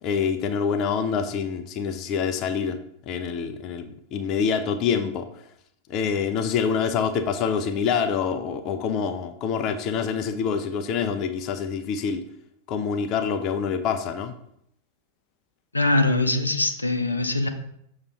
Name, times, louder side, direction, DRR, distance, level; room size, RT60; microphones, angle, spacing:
voice 1, 0.0-2.8 3.1-5.2 5.9-12.3 12.7-14.4, left 6 dB, 35° left, 7 dB, 0.5 m, -26 dB
voice 2, 15.7-17.5, left 2 dB, 80° left, 6 dB, 0.6 m, -22 dB
6.7 x 2.9 x 5.3 m, 0.72 s
figure-of-eight pair, 90°, 0 cm